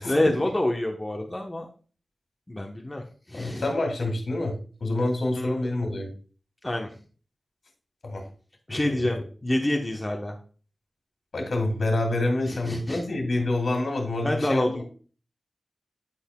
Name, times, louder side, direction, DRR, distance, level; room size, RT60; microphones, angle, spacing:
voice 1, 0.0-1.7 2.5-3.7 5.4-5.6 6.6-7.0 8.7-10.4 12.5-13.0 14.2-14.8, left 1 dB, 20° left, 2 dB, 1.0 m, -27 dB
voice 2, 3.3-4.5 4.8-6.1 8.0-8.3 9.1-9.2 11.3-14.8, left 2 dB, 75° left, 2 dB, 2.6 m, -27 dB
12.0 x 4.1 x 2.2 m, 0.39 s
wide cardioid pair, 65°, 0 cm